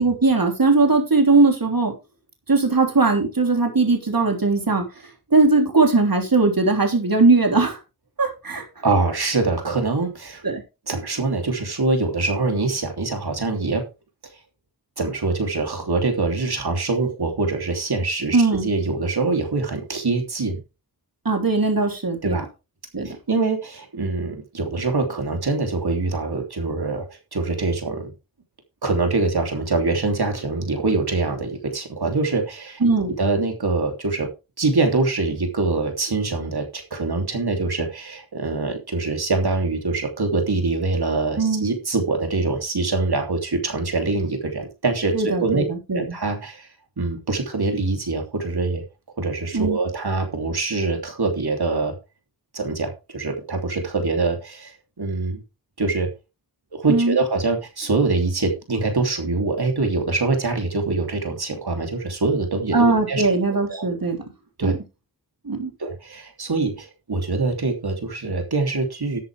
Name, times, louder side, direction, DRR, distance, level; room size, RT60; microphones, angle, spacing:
voice 1, 0.0-1.9 2.5-4.8 5.3-7.8 8.2-8.6 10.4-10.6 18.3-18.7 21.2-22.4 22.9-23.1 32.8-33.1 41.4-41.6 45.1-46.0 49.5-49.8 56.9-57.2 62.7-64.2 64.6-64.7 65.4-65.7, right 3 dB, 65° right, 3 dB, 3.4 m, -19 dB
voice 2, 8.8-10.4 10.9-13.8 15.0-18.4 18.6-20.6 22.2-22.5 23.0-28.1 28.8-32.8 33.2-34.3 34.6-45.6 45.9-46.7 47.0-48.8 49.2-51.9 52.5-55.4 55.8-56.1 56.7-63.2 63.7-63.9 64.6-64.7 65.8-69.2, right 3 dB, 90° right, 4 dB, 3.1 m, -24 dB
13.0 x 8.3 x 3.5 m, 0.27 s
wide cardioid pair, 45°, 37 cm